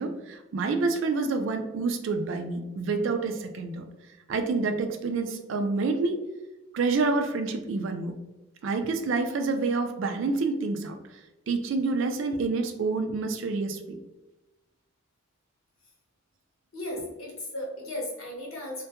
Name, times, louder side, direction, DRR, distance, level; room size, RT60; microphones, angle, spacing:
voice 1, 0.0-3.8 4.3-6.2 6.7-8.2 8.6-11.0 11.5-14.0, right 3 dB, 65° right, 6 dB, 0.3 m, -28 dB
voice 2, 16.7-18.8, left 1 dB, 85° left, -2 dB, 0.8 m, -35 dB
2.2 x 2.1 x 2.8 m, 1.0 s
head